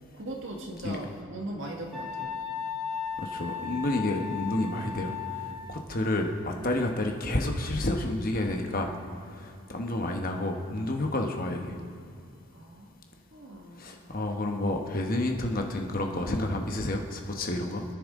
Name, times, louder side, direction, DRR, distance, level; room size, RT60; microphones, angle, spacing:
voice 1, 0.1-2.4 12.5-12.9 13.3-13.9, right 1 dB, 55° right, 1 dB, 1.7 m, -39 dB
Wind instrument woodwind instrument, 1.9-6.0, left 7 dB, ahead, 1.8 m, -36 dB
voice 2, 3.2-8.9 9.3-11.8 13.8-17.8, left 1 dB, 40° left, 2 dB, 1.0 m, -30 dB
26.0 x 10.0 x 3.7 m, 2.3 s
head